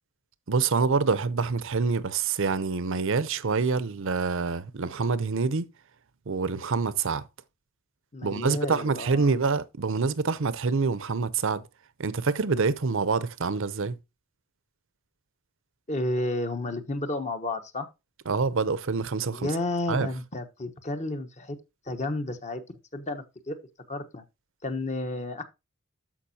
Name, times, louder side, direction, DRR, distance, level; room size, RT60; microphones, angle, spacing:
voice 1, 0.5-5.7 6.3-7.2 8.2-11.6 12.0-14.0 18.3-19.5 19.9-20.1, right 4 dB, 60° right, 0.7 m, -26 dB
voice 2, 8.1-9.4 15.9-17.9 19.3-21.6 21.9-22.6 22.9-23.6 23.9-24.2 24.6-25.4, left 2 dB, 35° left, 1.1 m, -31 dB
13.5 x 5.2 x 2.8 m
head